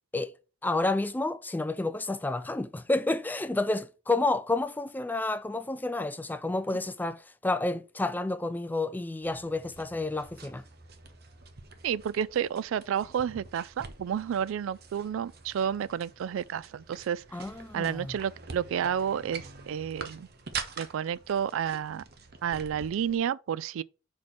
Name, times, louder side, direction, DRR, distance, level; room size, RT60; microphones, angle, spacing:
voice 1, 0.6-10.6 17.3-18.2, left 2 dB, 10° left, 0.3 m, -30 dB
sound 1, 9.2-23.2, right 5 dB, 50° right, 0.9 m, -45 dB
voice 2, 11.8-17.2 17.7-20.3 20.8-22.0 22.4-23.8, right 8 dB, 80° right, 0.3 m, -31 dB
4.8 x 4.3 x 5.9 m
head